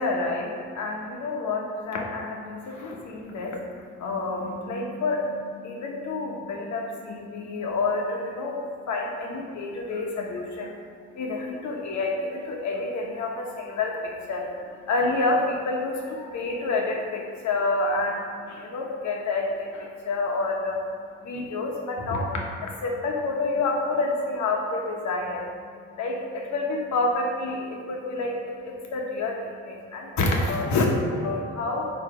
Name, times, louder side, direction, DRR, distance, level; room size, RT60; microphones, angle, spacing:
voice 1, 0.0-3.6 3.9-10.8 11.1-20.8 21.2-25.4 26.0-31.9, left 2 dB, 70° left, 0 dB, 1.2 m, -28 dB
4.9 x 4.4 x 4.9 m, 2.2 s
cardioid pair, 90°, 30 cm